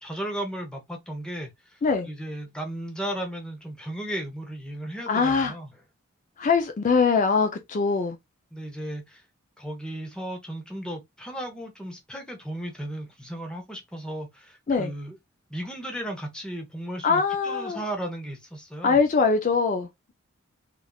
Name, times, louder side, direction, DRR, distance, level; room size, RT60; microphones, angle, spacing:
voice 1, 0.0-1.8 2.1-5.7 8.5-9.2 9.6-15.2 15.5-19.0, right 1 dB, 5° left, 0.7 m, -35 dB
voice 2, 5.1-5.5 6.4-8.2 14.7-14.9 17.0-17.8 18.8-20.1, left 5 dB, 40° left, 0.4 m, -22 dB
3.4 x 2.4 x 2.2 m
head